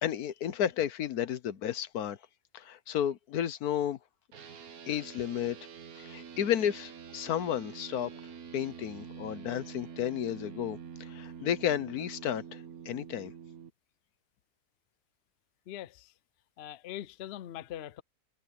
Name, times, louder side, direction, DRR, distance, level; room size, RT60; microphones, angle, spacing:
voice 1, 0.0-2.2 2.5-4.0 4.9-5.6 6.0-8.2 8.5-13.3, left 10 dB, 80° left, 1.4 m, -32 dB
sound 1, 4.3-13.7, right 7 dB, 70° right, 1.8 m, -46 dB
voice 2, 15.7-16.1 16.6-18.0, left 12 dB, 60° left, 0.7 m, -42 dB
omnidirectional pair, 1.6 m